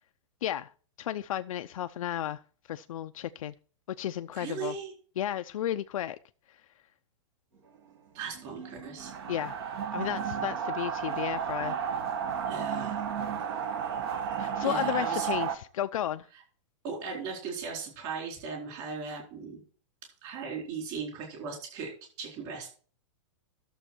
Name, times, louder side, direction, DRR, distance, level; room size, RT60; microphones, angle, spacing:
voice 1, 0.4-0.7 1.0-2.4 2.7-3.5 3.9-4.8 5.2-6.2 9.3-9.6 9.9-11.8 14.4-16.3, left 11 dB, 85° left, 0.5 m, -33 dB
voice 2, 4.4-4.9 8.1-9.1 12.5-13.0 14.6-15.3 16.8-19.6 20.2-21.9 22.2-22.7, right 5 dB, 30° right, 4.4 m, -37 dB
sound 1, 7.5-14.5, right 5 dB, 70° right, 6.9 m, -51 dB
sound 2, 9.0-15.5, right 8 dB, 50° right, 1.2 m, -32 dB
12.5 x 7.1 x 4.5 m
supercardioid pair, 175°, 17 cm